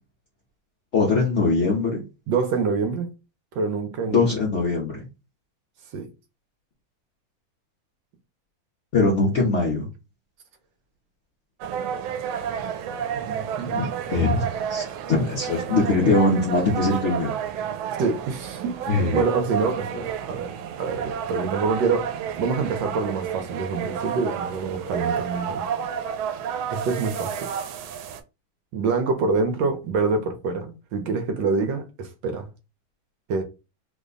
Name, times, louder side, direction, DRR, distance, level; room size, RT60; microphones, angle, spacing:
voice 1, 0.9-2.0 4.0-5.1 8.9-9.9 13.6-17.7 18.9-19.3 19.9-20.0, left 3 dB, 60° left, 0.7 m, -22 dB
voice 2, 2.3-3.1 3.6-4.3 5.9-6.1 13.1-13.7 18.0-18.8 19.1-25.7 26.7-27.5 28.7-32.5 33.3-33.4, right 4 dB, 75° right, 1.3 m, -26 dB
sound 1, 11.6-28.2, right 8 dB, 90° right, 1.4 m, -31 dB
3.3 x 2.1 x 3.7 m
omnidirectional pair, 2.2 m